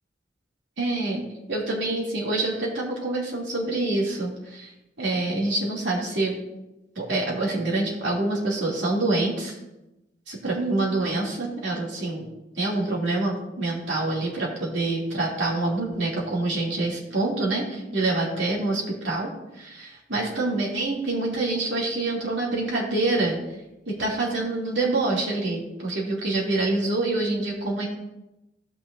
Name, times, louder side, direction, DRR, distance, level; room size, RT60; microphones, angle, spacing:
voice 1, 0.8-1.2 1.5-4.7 5.0-6.3 6.9-9.5 10.3-12.3 12.6-19.3 19.6-23.4 23.9-27.9, right 2 dB, 90° right, -4 dB, 3.0 m, -26 dB
16.0 x 6.4 x 2.8 m, 0.96 s
head